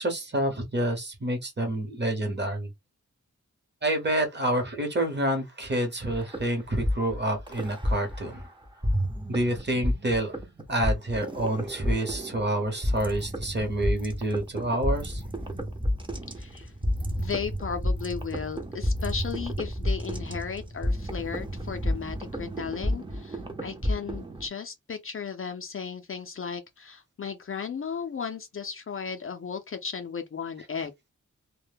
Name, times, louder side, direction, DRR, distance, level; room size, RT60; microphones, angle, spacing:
voice 1, 0.0-2.7 3.8-8.5 9.3-10.3 10.7-15.2, right 1 dB, 35° right, 0.9 m, -28 dB
sound 1, 6.1-8.4 8.8-24.5, equal, 15° right, 0.6 m, -30 dB
voice 2, 16.4-16.7 17.2-31.1, left 6 dB, 45° left, 0.4 m, -35 dB
2.2 x 2.0 x 3.2 m
wide cardioid pair, 105°, 31 cm